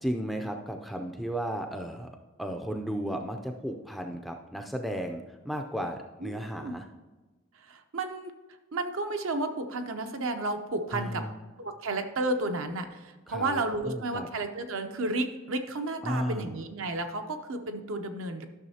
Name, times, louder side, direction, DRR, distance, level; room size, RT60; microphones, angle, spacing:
voice 1, 0.0-2.1 2.4-6.8 10.9-11.4 13.3-14.3 16.0-16.6, equal, ahead, 3 dB, 0.4 m, -34 dB
voice 2, 6.2-6.8 7.7-8.3 8.7-11.2 11.6-18.5, right 2 dB, 70° right, 6 dB, 0.7 m, -32 dB
12.0 x 6.3 x 2.8 m, 1.2 s
head